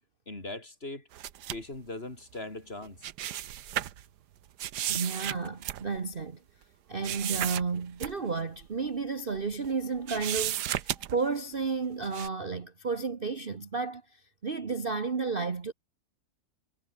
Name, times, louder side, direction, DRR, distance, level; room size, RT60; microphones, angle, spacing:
voice 1, 0.3-1.1 1.5-3.1, left 2 dB, 30° left, 4.0 m, -40 dB
sound 1, 1.1-1.7 2.8-4.0 4.6-6.2 7.0-7.7 8.0-8.1 8.6-8.7 9.4-9.7 10.1-11.3 12.0-12.3, right 11 dB, 65° right, 1.4 m, -34 dB
voice 2, 4.9-6.4 6.9-10.7 10.9-15.7, right 4 dB, 35° right, 1.3 m, -32 dB
omnidirectional pair, 2.0 m